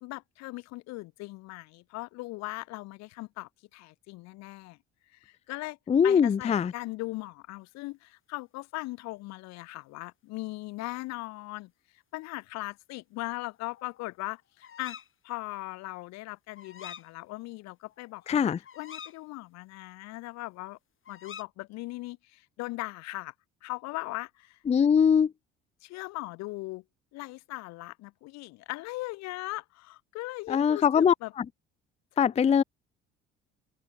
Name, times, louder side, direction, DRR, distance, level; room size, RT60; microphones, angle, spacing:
voice 1, 0.0-4.8 5.1-5.8 6.0-11.7 12.1-15.0 15.2-18.4 18.8-20.8 21.1-23.3 23.6-24.6 25.8-26.8 27.1-31.3 32.2-32.3, left 21 dB, 60° left, 0.9 m, -39 dB
voice 2, 5.9-6.7 18.3-18.6 24.7-25.3 30.5-31.4 32.2-32.6, left 7 dB, 20° left, 0.5 m, -22 dB
sound 1, 13.6-14.2 14.6-15.1 16.6-17.1 17.5-17.6 17.9-19.2 21.0-21.4, left 8 dB, 40° left, 6.2 m, -46 dB
open air
figure-of-eight pair, 55°, 31 cm